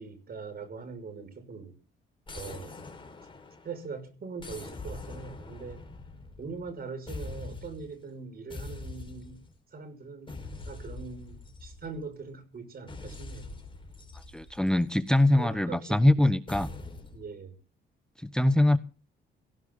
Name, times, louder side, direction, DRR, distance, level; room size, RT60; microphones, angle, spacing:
voice 1, 0.0-1.8 2.3-2.9 3.6-5.8 6.4-13.6 15.3-16.4 17.1-17.6, right 4 dB, 50° right, 6.0 m, -42 dB
sound 1, 2.3-3.9 4.4-6.7 7.1-7.9 8.5-9.5 10.3-12.1 12.9-15.3 16.5-17.2, left 3 dB, 25° left, 4.8 m, -43 dB
voice 2, 14.3-16.7 18.2-18.8, left 1 dB, 5° left, 1.0 m, -23 dB
17.5 x 17.0 x 3.9 m
cardioid pair, 90°, 20 cm